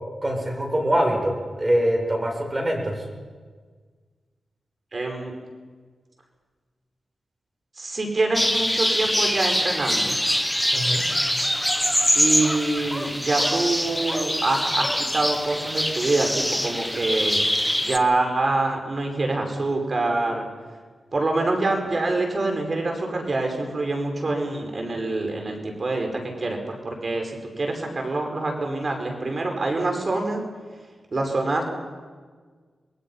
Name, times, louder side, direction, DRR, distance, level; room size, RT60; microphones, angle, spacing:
voice 1, 0.2-3.0 10.7-11.0, equal, 25° right, 1 dB, 7.6 m, -23 dB
voice 2, 4.9-5.3 7.8-10.2 12.1-17.4 17.8-20.5 21.1-30.4 31.1-31.6, right 2 dB, 45° right, 3 dB, 5.3 m, -25 dB
sound 1, 8.3-18.0, equal, 5° left, 1.5 m, -24 dB
28.0 x 21.5 x 5.8 m, 1.5 s
cardioid pair, 55°, 0 cm